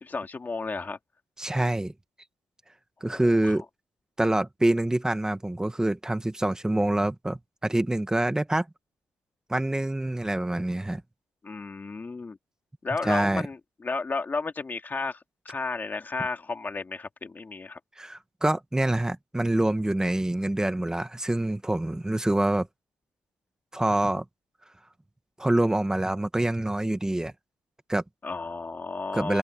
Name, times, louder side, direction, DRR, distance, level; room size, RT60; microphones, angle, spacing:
voice 1, 0.0-1.0 3.1-3.6 11.4-12.4 12.8-17.8 28.2-29.4, left 4 dB, 25° left, 2.2 m, -33 dB
voice 2, 1.4-1.9 3.0-3.6 4.2-8.7 9.5-11.0 13.0-13.4 18.0-22.7 23.7-24.2 25.4-27.3 27.9-28.0 29.1-29.4, right 1 dB, 10° right, 1.3 m, -26 dB
open air
wide cardioid pair, 150°, 7 cm